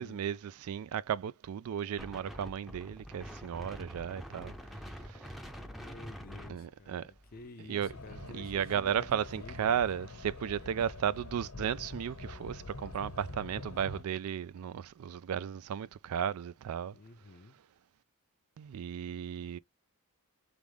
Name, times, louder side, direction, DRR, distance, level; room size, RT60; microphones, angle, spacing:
voice 1, 0.0-4.6 4.9-5.3 6.5-7.1 7.7-7.9 8.3-17.0 18.6-19.6, right 8 dB, 70° right, 0.3 m, -34 dB
Wind, 2.0-7.5, equal, ahead, 0.6 m, -46 dB
voice 2, 5.6-9.7 16.9-17.5, left 2 dB, 40° left, 0.6 m, -51 dB
sound 1, 7.8-14.0, left 2 dB, 80° left, 1.1 m, -45 dB
3.5 x 3.5 x 3.4 m
head